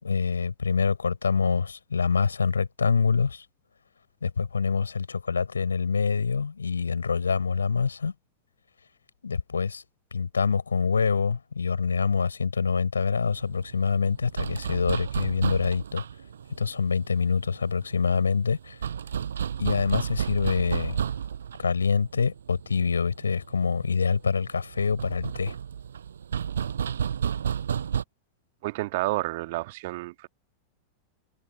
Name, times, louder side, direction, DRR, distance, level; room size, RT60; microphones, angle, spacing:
voice 1, 0.0-3.5 4.2-8.1 9.2-9.8 10.1-16.0 16.6-18.8 19.6-21.0 21.6-25.5, left 5 dB, 75° left, 7.0 m, -25 dB
sound 1, 13.3-28.0, right 8 dB, 65° right, 7.3 m, -32 dB
voice 2, 28.6-30.3, right 21 dB, 50° right, 2.1 m, -30 dB
figure-of-eight pair, 90°, 0 cm